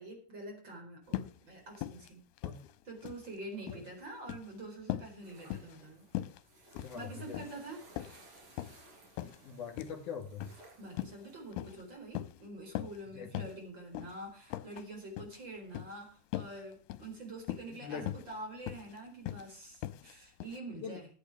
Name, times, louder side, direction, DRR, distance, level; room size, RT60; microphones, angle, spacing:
voice 1, 0.0-2.2 2.8-6.0 6.9-8.2 10.8-21.1, right 1 dB, 25° right, 1 dB, 4.8 m, -46 dB
sound 1, 1.1-1.4 1.7-2.1 2.4-3.3 3.5-3.9 4.2-4.5 4.9-5.1 5.5-5.8 6.1-6.4 6.7-7.0 7.3-7.6 8.0-8.8 9.2-9.4 9.8-10.0 10.4-10.6 10.9-11.2 11.5-11.8 12.1-12.4 12.7-13.0 13.3-13.6 13.9-14.1 14.5-14.8 15.2-15.4 15.7-15.9 16.3-16.6 16.9-17.1 17.4-17.8 18.1-18.3 18.7-18.9 19.3-19.5 19.8-20.1 20.4-20.6, left 14 dB, 80° left, 2.7 m, -40 dB
sound 2, 5.2-11.9, right 2 dB, 55° right, 5.1 m, -59 dB
voice 2, 6.7-7.4 9.4-10.5 13.1-13.4 17.7-18.1 20.7-21.0, left 6 dB, 55° left, 4 dB, 3.4 m, -42 dB
14.0 x 8.6 x 4.9 m, 0.39 s
omnidirectional pair, 4.7 m